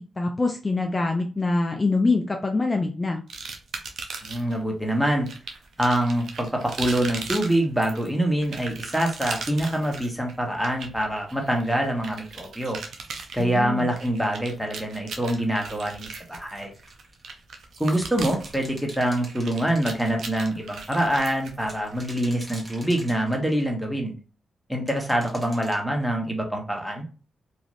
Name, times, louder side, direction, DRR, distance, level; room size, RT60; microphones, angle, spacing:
voice 1, 0.0-3.2 13.4-13.9, left 3 dB, 30° left, 3 dB, 0.5 m, -24 dB
sound 1, 3.3-4.6 5.3-22.1, right 4 dB, 75° right, 0.6 m, -38 dB
voice 2, 4.2-5.3 5.8-12.8 13.3-16.7 17.8-24.1 24.7-27.0, right 1 dB, 5° right, 2 dB, 1.1 m, -25 dB
sound 2, 16.7-17.2 18.0-20.5 21.6-23.7 24.9-25.8, right 1 dB, 35° right, 1.3 m, -45 dB
3.1 x 2.4 x 2.5 m, 0.35 s
supercardioid pair, 45°, 0 cm